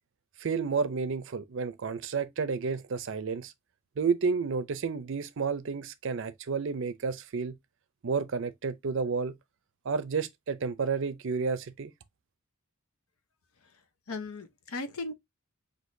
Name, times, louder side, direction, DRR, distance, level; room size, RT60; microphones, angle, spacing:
voice 1, 0.4-3.5 4.0-7.5 8.0-9.3 9.9-11.9, right 5 dB, 60° right, 0.5 m, -31 dB
voice 2, 13.6-15.1, left 3 dB, 90° left, 0.8 m, -38 dB
6.1 x 2.7 x 2.6 m
head